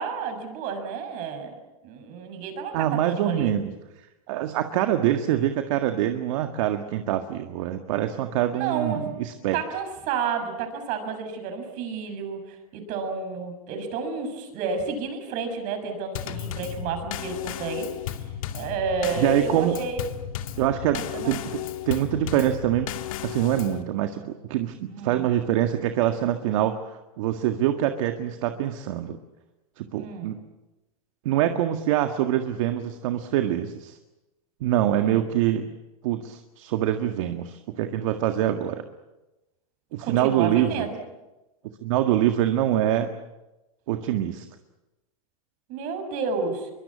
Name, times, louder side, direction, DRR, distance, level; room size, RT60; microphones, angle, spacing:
voice 1, 0.0-1.6 1.8-3.5 8.5-9.1 9.5-17.9 18.2-20.0 20.9-21.6 24.9-25.2 30.0-30.3 35.0-35.2 40.0-41.0 45.7-46.7, right 5 dB, 45° right, 7 dB, 6.7 m, -31 dB
voice 2, 2.7-3.7 4.3-9.6 19.2-19.8 20.6-22.9 23.2-26.8 27.2-29.2 29.8-30.4 31.3-34.0 34.6-35.7 36.0-38.8 39.9-40.8 41.8-43.1 43.9-44.5, right 12 dB, 60° right, 7 dB, 1.9 m, -25 dB
Drum kit / Snare drum / Bass drum, 16.2-23.8, left 11 dB, 70° left, 2.1 m, -34 dB
23.5 x 23.5 x 8.6 m, 1.0 s
hypercardioid pair, 130°, 18 cm